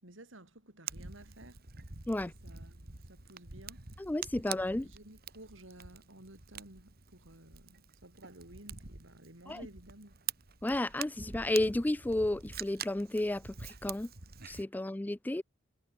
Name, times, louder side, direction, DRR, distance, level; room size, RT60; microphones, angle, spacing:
voice 1, 0.0-1.6 2.2-3.9 4.3-10.2, right 1 dB, 75° right, 5.2 m, -54 dB
Fire, 0.9-14.6, right 7 dB, 50° right, 2.6 m, -46 dB
voice 2, 4.0-4.9 9.5-9.7 10.6-14.1 14.4-15.4, left 1 dB, 10° left, 0.3 m, -32 dB
head